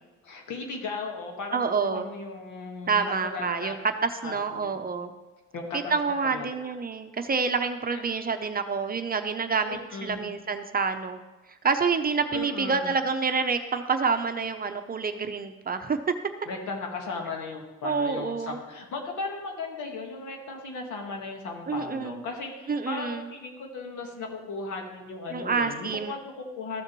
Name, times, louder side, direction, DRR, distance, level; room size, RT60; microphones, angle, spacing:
voice 1, 0.2-3.7 4.2-4.8 5.5-5.9 6.2-6.7 7.9-8.0 9.7-10.3 12.3-12.9 16.4-26.8, left 3 dB, 80° left, 2 dB, 1.7 m, -36 dB
voice 2, 1.5-2.1 2.9-3.8 4.0-5.1 5.9-11.2 11.6-16.0 17.8-18.6 21.7-22.2 22.7-23.2 25.3-26.2, right 5 dB, 30° right, 7 dB, 0.7 m, -28 dB
13.5 x 6.4 x 3.0 m, 1.1 s
cardioid pair, 90°, 30 cm